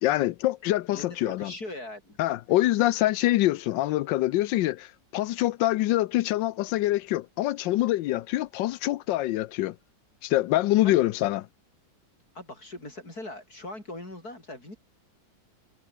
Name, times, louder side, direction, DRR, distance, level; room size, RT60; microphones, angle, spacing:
voice 1, 0.0-1.5 2.2-9.8 10.2-11.5, left 16 dB, 85° left, 1.3 m, -25 dB
voice 2, 0.9-2.2 2.8-2.9 10.8-11.0 12.3-14.8, left 2 dB, 55° left, 8.5 m, -40 dB
omnidirectional pair, 1.9 m